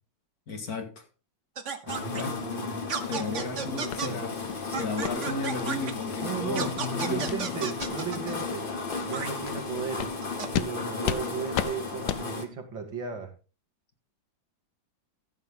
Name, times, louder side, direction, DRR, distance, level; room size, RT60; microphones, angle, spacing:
voice 1, 0.5-1.1 2.1-2.4 3.0-4.4 4.7-7.7, left 3 dB, 50° left, 2.2 m, -34 dB
sound 1, 1.6-2.2 2.9-4.1 4.7-5.9 6.5-8.4 9.1-9.3 10.2-10.5, right 6 dB, 45° right, 1.3 m, -33 dB
voice 2, 1.8-2.8 3.1-4.3 6.2-6.7 7.0-8.7 9.0-10.1 10.5-13.3, right 6 dB, 75° right, 3.1 m, -36 dB
sound 2, 1.9-12.5, left 4 dB, 30° left, 1.3 m, -34 dB
sound 3, 3.9-4.0 4.4-4.6 5.0-5.2 5.6-5.7 6.1-6.2 6.6-6.8 7.3-7.4 7.7-7.9 8.4-8.5 8.9-9.0 9.4-9.6 10.0-10.1 10.5-10.7 11.0-11.2 11.5-11.7 12.1-12.2, left 10 dB, 70° left, 1.2 m, -32 dB
14.0 x 8.1 x 3.7 m
omnidirectional pair, 2.1 m